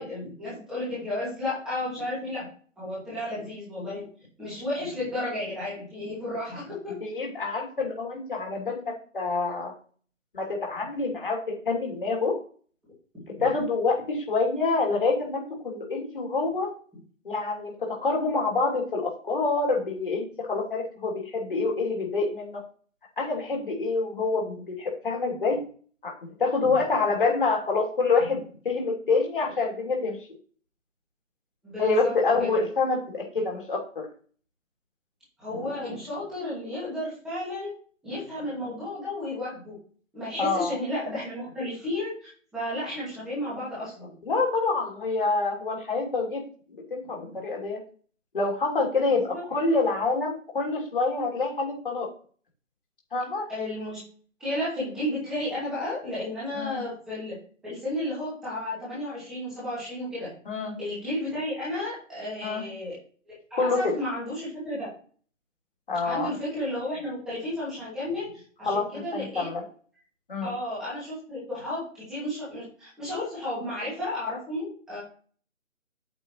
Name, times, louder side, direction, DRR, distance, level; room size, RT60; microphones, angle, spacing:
voice 1, 0.0-2.5 2.8-4.0 4.4-7.0 13.3-13.5 26.6-26.7 31.6-32.1 32.4-32.6 35.4-37.7 38.0-39.7 40.1-44.1 47.2-47.4 49.1-49.4 53.5-54.0 54.4-57.4 57.6-60.3 60.8-63.0 63.3-64.9 66.0-69.5 70.4-75.0, left 1 dB, ahead, -10 dB, 2.2 m, -33 dB
voice 2, 7.0-9.7 10.3-12.4 13.4-16.7 17.2-22.7 23.2-25.6 26.0-26.1 26.4-30.2 31.8-34.1 40.4-40.7 44.2-46.4 46.7-47.8 48.3-52.1 53.1-53.4 56.5-56.8 60.5-60.7 62.4-62.6 63.6-63.9 65.9-66.3 68.7-68.8 69.1-69.6 70.3-70.5, left 3 dB, 40° left, -1 dB, 2.9 m, -27 dB
8.8 x 7.5 x 3.1 m, 0.43 s
hypercardioid pair, 175°, 39 cm